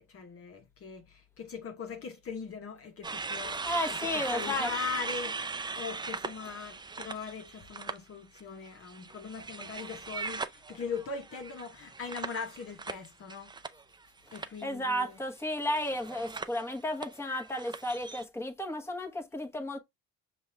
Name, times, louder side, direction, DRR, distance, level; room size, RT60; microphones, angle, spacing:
voice 1, 0.0-3.7 4.0-13.5 14.3-15.1, left 6 dB, 50° left, 0.9 m, -40 dB
sound 1, 3.0-8.0 8.4-14.1 14.3-14.6 15.5-18.2, right 4 dB, 15° right, 0.4 m, -39 dB
voice 2, 3.6-4.7 14.3-19.8, left 1 dB, 10° left, 1.1 m, -33 dB
5.3 x 2.5 x 3.3 m
cardioid pair, 90°, 30 cm